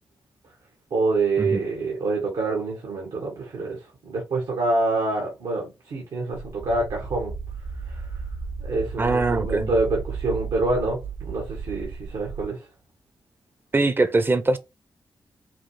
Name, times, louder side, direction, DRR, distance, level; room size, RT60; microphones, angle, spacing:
voice 1, 0.9-7.3 7.9-8.0 8.6-12.6, right 3 dB, 85° right, 1.7 m, -26 dB
sound 1, 6.3-12.5, right 5 dB, 60° right, 0.9 m, -34 dB
voice 2, 9.0-9.7 13.7-14.6, right 2 dB, 25° right, 0.6 m, -22 dB
5.8 x 2.4 x 3.3 m
cardioid pair, 50°, 8 cm